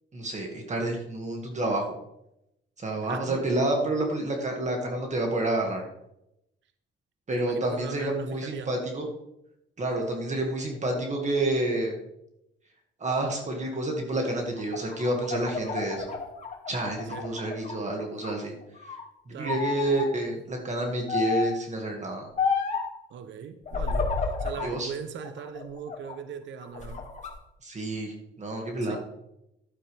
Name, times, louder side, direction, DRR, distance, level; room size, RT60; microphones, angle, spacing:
voice 1, 0.1-1.9 2.8-5.8 7.3-9.1 9.8-11.9 13.0-16.1 16.7-18.8 19.3-22.3 24.6-24.9 27.6-29.0, right 2 dB, 35° right, 1 dB, 2.1 m, -29 dB
voice 2, 3.1-3.5 7.3-8.7 17.0-17.3 19.3-19.6 23.1-24.1 24.4-27.0 28.8-29.0, right 7 dB, 70° right, 10 dB, 0.8 m, -39 dB
sound 1, 14.6-17.8 18.2-19.0 19.4-20.1 21.1-21.6 22.4-22.9 23.7-24.7 25.2-26.2 26.6-27.3, left 5 dB, 35° left, 2.3 m, -31 dB
12.0 x 8.9 x 3.4 m, 0.85 s
cardioid pair, 90°, 20 cm